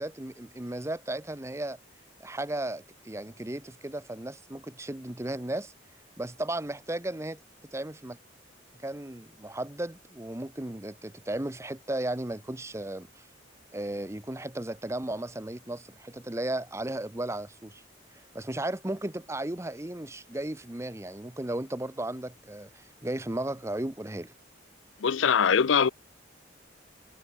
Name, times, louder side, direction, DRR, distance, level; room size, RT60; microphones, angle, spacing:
voice 1, 0.0-1.8 2.2-5.7 6.2-8.2 8.8-13.2 13.7-17.8 18.1-24.3 25.7-25.8, right 1 dB, 15° right, 0.8 m, -35 dB
voice 2, 25.0-25.9, left 7 dB, 75° left, 0.5 m, -22 dB
head